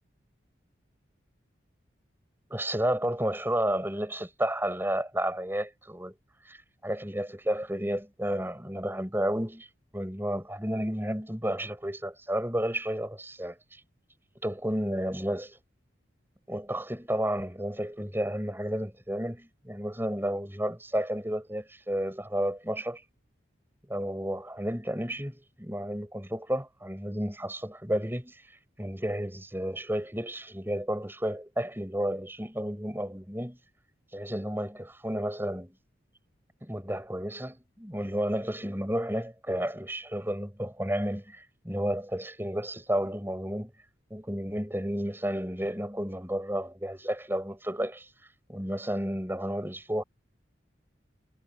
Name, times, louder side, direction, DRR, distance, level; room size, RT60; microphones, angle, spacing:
voice 1, 2.5-6.1 6.5-6.6 6.8-9.7 9.9-13.6 14.4-15.6 16.5-23.0 23.9-28.4 28.8-33.6 34.1-35.7 36.6-43.7 44.1-48.1 48.5-50.0, equal, 10° right, 6.1 m, -32 dB
head